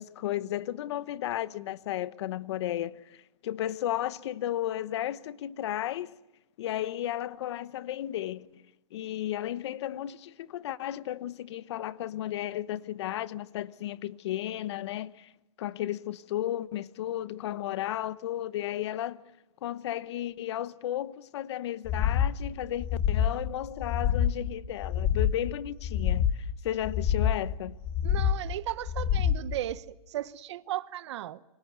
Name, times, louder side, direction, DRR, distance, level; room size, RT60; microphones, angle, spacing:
voice 1, 0.0-6.1 6.6-8.6 8.9-15.3 15.6-19.2 19.6-27.8, left 12 dB, 45° left, 1.0 m, -34 dB
sound 1, 21.9-22.3 22.8-23.4 23.8-24.4 24.8-25.4 25.8-26.4 26.8-27.4 27.8-28.4 28.8-29.4, left 9 dB, 25° left, 1.4 m, -26 dB
voice 2, 28.0-31.4, right 13 dB, 50° right, 1.0 m, -36 dB
29.0 x 25.5 x 8.1 m
hypercardioid pair, 160°, 19 cm